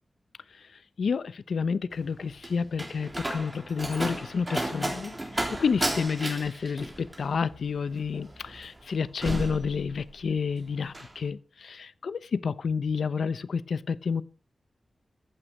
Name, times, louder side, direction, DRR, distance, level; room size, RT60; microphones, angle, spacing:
voice 1, 1.0-14.2, left 5 dB, 90° left, 0.7 m, -30 dB
Slam, 1.9-10.4 10.7-11.2, right 1 dB, 15° right, 3.6 m, -34 dB
14.5 x 9.1 x 6.6 m
wide cardioid pair, 125°, 0 cm